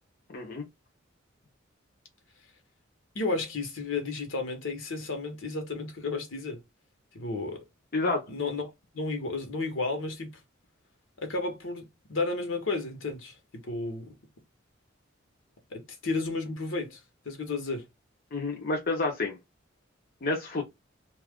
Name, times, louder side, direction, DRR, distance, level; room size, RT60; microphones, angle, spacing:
voice 1, 0.3-0.7 7.9-8.3 18.3-19.4 20.2-20.6, left 3 dB, 50° left, 0.7 m, -29 dB
voice 2, 3.1-6.6 7.1-7.6 8.3-10.3 11.2-14.1 15.7-17.9, left 3 dB, 75° left, 1.0 m, -33 dB
2.7 x 2.4 x 3.4 m
head